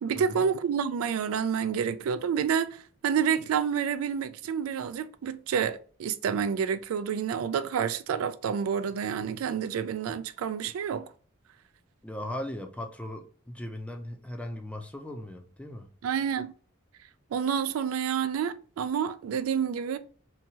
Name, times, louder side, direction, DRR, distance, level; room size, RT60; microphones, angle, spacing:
voice 1, 0.0-11.1 16.0-16.5 17.3-20.0, right 7 dB, 85° right, 0.3 m, -29 dB
voice 2, 12.0-15.9, left 1 dB, 5° left, 0.4 m, -38 dB
2.8 x 2.3 x 2.7 m
head